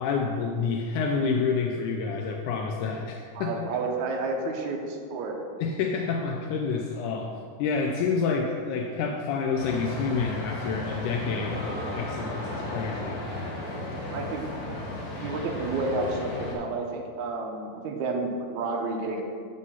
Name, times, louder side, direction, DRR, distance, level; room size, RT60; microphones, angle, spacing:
voice 1, 0.0-3.7 5.6-13.2, left 5 dB, 80° left, 2 dB, 2.0 m, -28 dB
voice 2, 3.4-5.4 14.1-14.5 15.2-19.2, right 3 dB, 70° right, 2 dB, 2.1 m, -30 dB
sound 1, 9.6-16.6, left 1 dB, 50° left, 2.0 m, -34 dB
7.4 x 5.4 x 5.5 m, 2.2 s
omnidirectional pair, 3.7 m